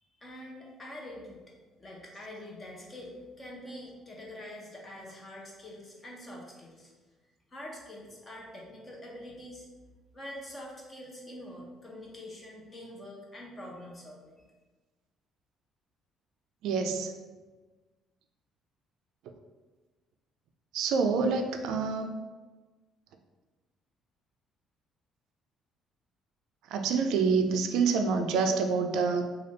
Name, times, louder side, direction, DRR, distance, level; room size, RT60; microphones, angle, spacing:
voice 1, 0.2-1.4 1.8-6.9 7.5-9.7 10.1-14.4, left 1 dB, 20° left, -2 dB, 0.7 m, -45 dB
voice 2, 16.6-17.1 20.7-22.1 26.7-29.2, right 5 dB, 75° right, 5 dB, 0.3 m, -27 dB
3.3 x 2.4 x 4.0 m, 1.3 s
cardioid pair, 160°, 0 cm